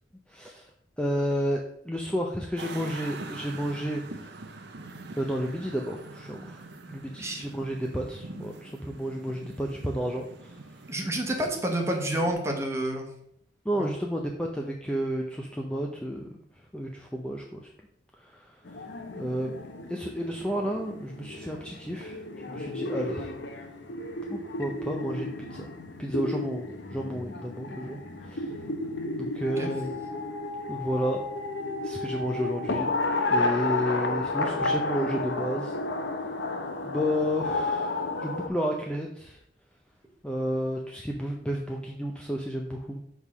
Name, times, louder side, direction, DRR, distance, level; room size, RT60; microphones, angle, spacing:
voice 1, 0.3-0.7 1.0-4.4 5.2-6.6 6.9-10.6 13.6-16.3 16.7-17.7 18.2-18.6 19.2-19.6 19.9-22.2 22.5-23.3 24.3-25.7 26.0-28.0 28.3-28.5 29.2-30.0 30.7-31.2 31.8-32.9 33.3-35.8 36.8-39.4 40.2-43.0, equal, 5° left, 0 dB, 0.5 m, -31 dB
sound 1, 2.6-12.3, right 3 dB, 60° right, 0.7 m, -44 dB
voice 2, 10.9-13.1 13.8-13.9 29.6-29.7, right 1 dB, 15° right, 2 dB, 1.1 m, -29 dB
sound 2, 18.6-38.5, left 2 dB, 75° left, 0.8 m, -32 dB
6.4 x 3.6 x 6.0 m, 0.72 s
head